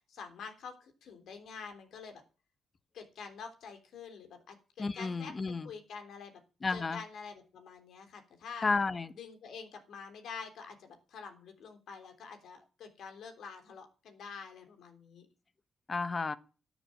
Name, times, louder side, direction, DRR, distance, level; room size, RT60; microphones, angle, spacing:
voice 1, 0.1-2.2 2.9-6.4 6.7-8.7 9.1-15.3, left 5 dB, 75° left, 3.4 m, -47 dB
voice 2, 4.8-5.7 6.6-7.0 8.6-9.1 15.9-16.4, left 4 dB, 40° left, 1.1 m, -32 dB
13.0 x 7.2 x 8.8 m
supercardioid pair, 50°, 0 cm